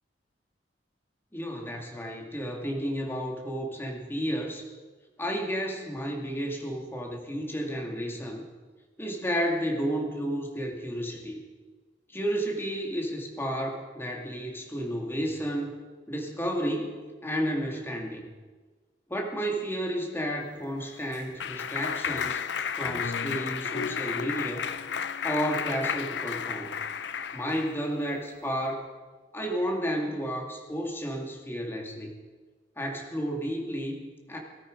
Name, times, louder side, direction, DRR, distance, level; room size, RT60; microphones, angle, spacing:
voice 1, 1.3-4.7 5.2-8.4 9.0-11.4 12.1-15.7 16.1-17.0 17.2-18.3 19.1-22.4 22.8-24.7 25.2-26.7 27.3-28.9 29.3-32.1 32.8-34.4, equal, 15° left, 0 dB, 2.1 m, -32 dB
Clapping, 20.6-27.8, left 7 dB, 70° left, 0.6 m, -32 dB
18.5 x 13.5 x 5.1 m, 1.4 s
head